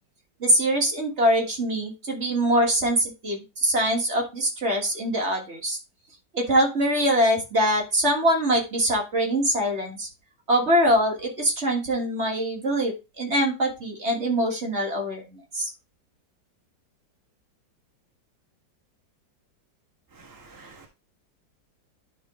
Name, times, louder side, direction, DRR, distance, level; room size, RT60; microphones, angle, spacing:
voice 1, 0.4-5.8 6.3-10.1 10.5-15.7, equal, 40° right, 1 dB, 1.9 m, -23 dB
voice 2, 20.2-20.9, right 3 dB, 15° right, 0 dB, 1.1 m, -49 dB
11.0 x 3.7 x 3.7 m, 0.27 s
omnidirectional pair, 2.0 m